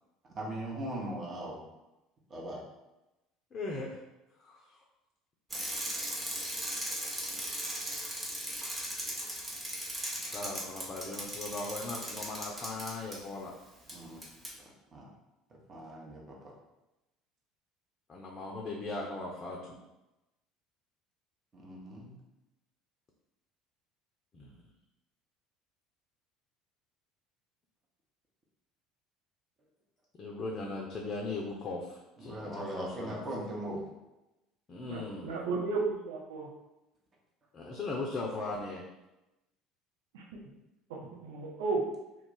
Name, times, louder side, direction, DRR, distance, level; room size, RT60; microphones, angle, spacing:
voice 1, 0.3-1.6 2.3-2.6 13.9-14.2 14.9-15.1 15.7-16.5 21.5-22.1 32.2-33.9, right 1 dB, 35° right, -2 dB, 0.8 m, -39 dB
voice 2, 3.5-4.0 4.3-4.8 10.3-13.5 18.1-19.8 24.3-24.6 30.2-33.1 34.7-35.3 37.5-38.8, left 3 dB, 35° left, -1 dB, 0.5 m, -38 dB
Bicycle, 5.5-13.2 13.9-14.0 14.2-14.5, right 1 dB, 15° right, 0.9 m, -37 dB
voice 3, 34.9-36.5 40.1-40.2 40.9-41.9, right 4 dB, 70° right, -2 dB, 0.6 m, -34 dB
2.4 x 2.0 x 3.7 m, 0.97 s
figure-of-eight pair, 65°, 0 cm